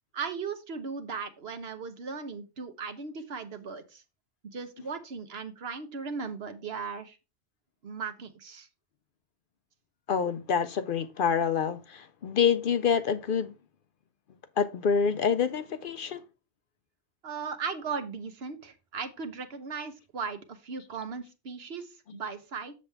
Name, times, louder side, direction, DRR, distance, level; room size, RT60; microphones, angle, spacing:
voice 1, 0.1-4.0 4.5-7.2 7.8-8.7 17.2-22.7, right 5 dB, 65° right, 1.2 m, -37 dB
voice 2, 10.1-13.5 14.6-16.2, left 7 dB, 60° left, 0.6 m, -27 dB
7.3 x 6.9 x 3.4 m
omnidirectional pair, 1.1 m